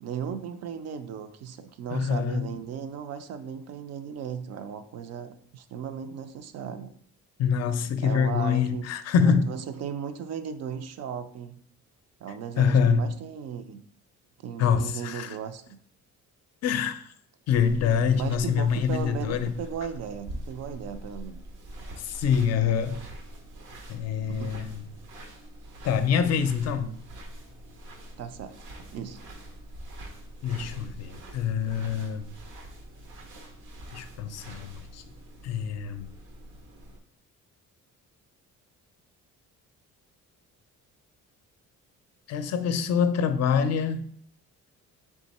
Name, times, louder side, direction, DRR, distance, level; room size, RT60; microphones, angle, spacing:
voice 1, 0.0-6.9 8.0-8.9 9.2-11.6 12.2-13.8 14.4-15.6 18.1-21.4 24.3-24.6 28.2-28.6 28.9-29.2, right 7 dB, 60° right, 0.4 m, -36 dB
voice 2, 1.9-2.4 7.4-9.5 12.6-13.1 14.6-15.3 16.6-17.0 17.5-19.5 22.0-23.0 23.9-24.7 25.8-26.9 30.4-32.3 33.9-35.0 35.4-36.1 42.3-44.1, left 7 dB, 60° left, 0.4 m, -25 dB
sound 1, 17.5-37.0, right 1 dB, 90° right, 0.9 m, -44 dB
3.6 x 3.5 x 4.1 m
cardioid pair, 145°, 30 cm